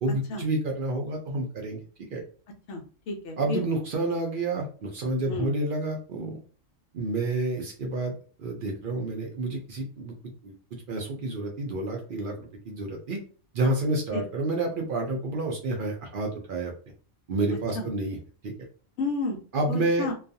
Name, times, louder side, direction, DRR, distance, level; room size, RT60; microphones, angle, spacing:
voice 1, 0.0-2.2 3.4-6.4 6.9-8.1 8.4-10.5 10.9-13.2 13.5-16.7 17.3-18.2 18.4-18.5 19.5-20.1, right 2 dB, 60° right, 1 dB, 0.5 m, -29 dB
voice 2, 2.7-3.6 5.3-5.5 14.1-14.2 17.5-17.9 19.0-19.4 19.7-20.1, left 3 dB, 70° left, 2 dB, 0.8 m, -32 dB
2.3 x 2.3 x 2.6 m, 0.40 s
omnidirectional pair, 1.4 m